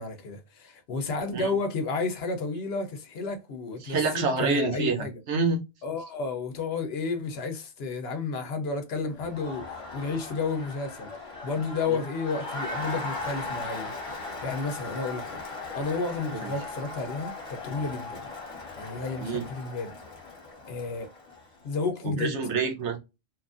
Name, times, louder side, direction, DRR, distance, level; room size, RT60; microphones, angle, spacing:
voice 1, 0.0-5.2 5.8-11.1 11.4-15.4 15.7-18.2 18.8-19.9 20.7-21.1 21.6-22.3, left 4 dB, 65° left, 0.8 m, -32 dB
voice 2, 3.8-5.6 11.9-12.0 16.3-16.5 19.2-19.4 22.0-23.0, right 4 dB, 70° right, 1.1 m, -27 dB
Crowd, 9.1-21.6, left 3 dB, 30° left, 0.9 m, -38 dB
2.9 x 2.4 x 2.4 m
omnidirectional pair, 1.2 m